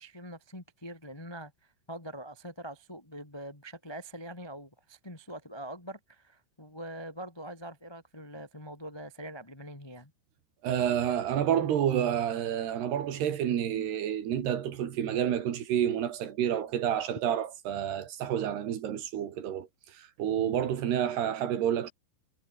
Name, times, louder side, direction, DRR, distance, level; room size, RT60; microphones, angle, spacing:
voice 1, 0.0-1.5 1.9-10.1, right 1 dB, 15° left, 0.9 m, -43 dB
voice 2, 10.6-21.9, right 10 dB, 65° right, 4.1 m, -29 dB
omnidirectional pair, 5.1 m